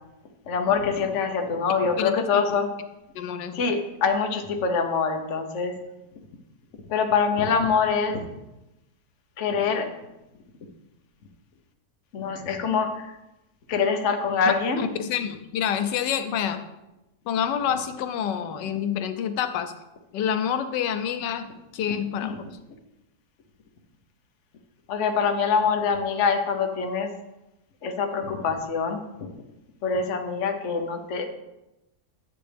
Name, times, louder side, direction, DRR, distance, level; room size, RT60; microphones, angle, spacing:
voice 1, 0.5-2.7 3.5-5.8 6.9-8.2 9.4-9.9 12.1-13.1 13.7-14.8 22.2-22.3 24.9-27.1 27.8-29.3 29.8-31.3, left 5 dB, 50° left, 4 dB, 1.1 m, -24 dB
voice 2, 2.0-2.4 3.1-3.6 14.8-16.6 17.3-19.7 20.1-21.5 21.7-22.5, left 8 dB, 85° left, 9 dB, 1.3 m, -27 dB
11.0 x 7.6 x 3.4 m, 0.97 s
omnidirectional pair, 1.8 m